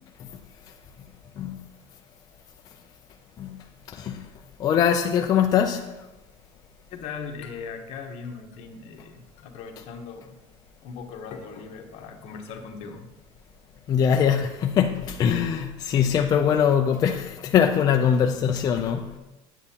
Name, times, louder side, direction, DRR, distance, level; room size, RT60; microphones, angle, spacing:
voice 1, 3.4-4.3 4.6-5.9 13.9-19.2, left 8 dB, 35° left, 0.4 m, -22 dB
voice 2, 6.9-10.4 10.8-13.1, left 5 dB, 60° left, 1.0 m, -39 dB
8.8 x 8.1 x 2.8 m
cardioid pair, 160°, 12 cm